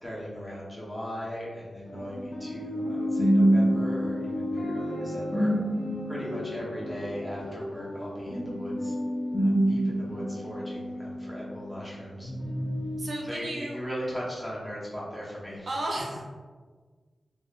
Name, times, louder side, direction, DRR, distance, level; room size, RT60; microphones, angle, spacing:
voice 1, 0.0-5.5 6.0-8.9 9.4-12.3 13.2-15.7, equal, 5° left, -8 dB, 0.9 m, -38 dB
sound 1, 1.9-11.9 12.2-13.0, equal, 80° left, 1.3 m, -28 dB
voice 2, 13.0-13.8 15.7-16.2, right 1 dB, 65° right, -2 dB, 0.5 m, -33 dB
3.6 x 2.1 x 2.3 m, 1.5 s
wide cardioid pair, 140°, 0 cm